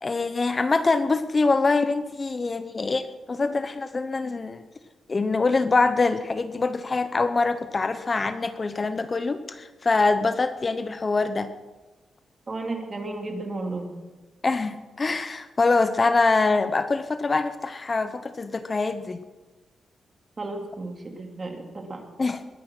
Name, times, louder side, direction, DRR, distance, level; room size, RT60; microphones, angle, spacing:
voice 1, 0.0-4.6 5.1-11.5 14.4-19.2 22.2-22.4, left 3 dB, 30° left, 11 dB, 0.8 m, -24 dB
voice 2, 12.5-13.9 20.4-22.0, right 2 dB, 35° right, 3 dB, 2.7 m, -33 dB
20.5 x 10.5 x 6.1 m, 1.2 s
wide cardioid pair, 115°, 0 cm